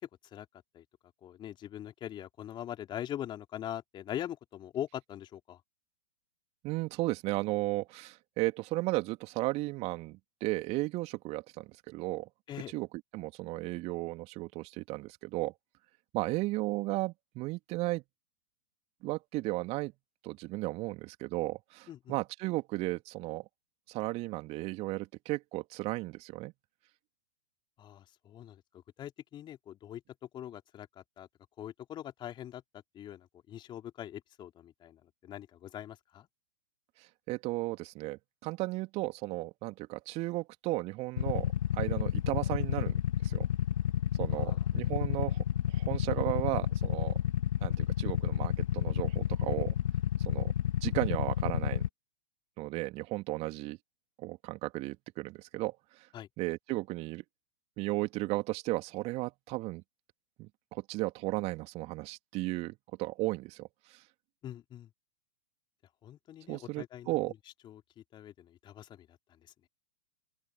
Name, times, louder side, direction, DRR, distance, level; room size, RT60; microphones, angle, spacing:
voice 1, 0.0-0.5 0.7-0.8 1.2-5.6 12.5-12.7 21.9-22.1 27.8-28.6 29.0-30.0 30.3-31.3 31.6-36.3 44.3-44.7 56.1-56.3 64.4-64.9 66.0-67.2 67.6-69.7, left 11 dB, 25° left, 4.0 m, -43 dB
voice 2, 6.6-12.3 12.7-12.9 13.1-15.5 16.1-18.0 19.0-19.9 20.2-23.5 23.9-26.5 37.3-43.5 44.2-47.2 47.6-49.7 50.3-50.5 50.8-51.8 52.6-53.8 54.2-56.1 56.4-57.2 57.8-59.8 60.4-64.0 66.5-67.3, right 21 dB, 35° right, 3.1 m, -35 dB
Motorcycle / Idling, 41.2-51.9, left 10 dB, 60° left, 1.6 m, -30 dB
open air
figure-of-eight pair, 105°, 19 cm